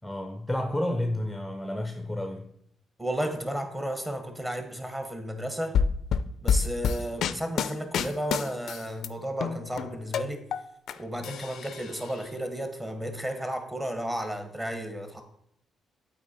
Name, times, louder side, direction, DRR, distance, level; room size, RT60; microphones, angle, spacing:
voice 1, 0.0-2.5, left 1 dB, 5° left, 0.6 m, -31 dB
voice 2, 3.0-5.8 6.4-10.4 11.0-15.2, equal, 15° right, 1.2 m, -33 dB
sound 1, 5.7-9.1 9.4-10.9 11.2-12.1, left 7 dB, 70° left, 0.4 m, -28 dB
7.8 x 4.5 x 4.3 m
cardioid pair, 90°, 0 cm